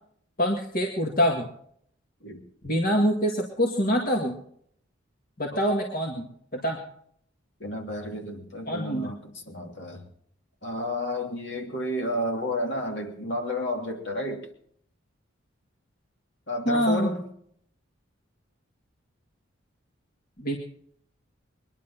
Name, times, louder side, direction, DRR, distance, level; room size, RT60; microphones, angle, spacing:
voice 1, 0.4-1.5 2.6-4.4 5.4-6.8 8.7-9.1 16.7-17.1 20.4-20.6, equal, 45° left, 1 dB, 2.1 m, -25 dB
voice 2, 7.6-10.0 10.6-14.5 16.5-17.3, left 1 dB, 60° left, 2 dB, 3.0 m, -31 dB
22.5 x 11.0 x 5.8 m, 0.65 s
head